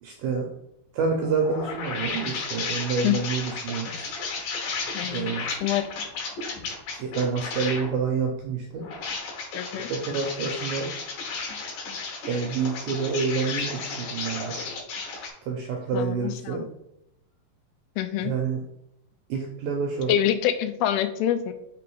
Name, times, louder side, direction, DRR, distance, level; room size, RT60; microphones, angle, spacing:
voice 1, 0.0-0.5 0.9-3.9 5.1-5.5 7.0-8.9 9.9-10.9 12.3-14.6 15.4-16.6 18.2-18.6 19.3-20.2, right 5 dB, 80° right, 2 dB, 1.9 m, -28 dB
sound 1, 1.0-7.9 8.7-15.3, left 4 dB, 65° left, 2.7 m, -33 dB
voice 2, 4.9-5.4 5.6-5.9 9.5-9.9 15.9-16.6 18.0-18.3 20.1-21.5, left 11 dB, 85° left, 9 dB, 2.4 m, -26 dB
5.9 x 3.4 x 4.7 m, 0.82 s
omnidirectional pair, 4.5 m